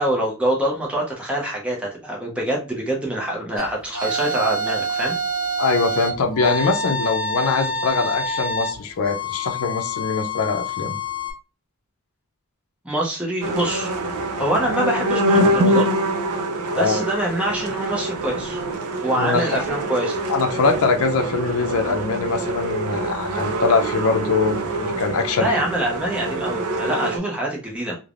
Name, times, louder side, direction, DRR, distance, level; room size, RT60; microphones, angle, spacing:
voice 1, 0.0-5.2 12.8-13.9 14.4-15.9 16.7-18.6 19.0-20.2 25.4-28.0, right 1 dB, 5° right, -3 dB, 0.5 m, -25 dB
sound 1, 3.6-11.3, equal, 40° left, 0.8 m, -27 dB
voice 2, 5.6-11.0 16.7-17.0 19.2-19.6 20.3-25.6, left 4 dB, 70° left, 4 dB, 0.5 m, -22 dB
sound 2, 13.4-27.2, right 1 dB, 80° right, 0.5 m, -25 dB
3.2 x 2.0 x 2.4 m, 0.32 s
head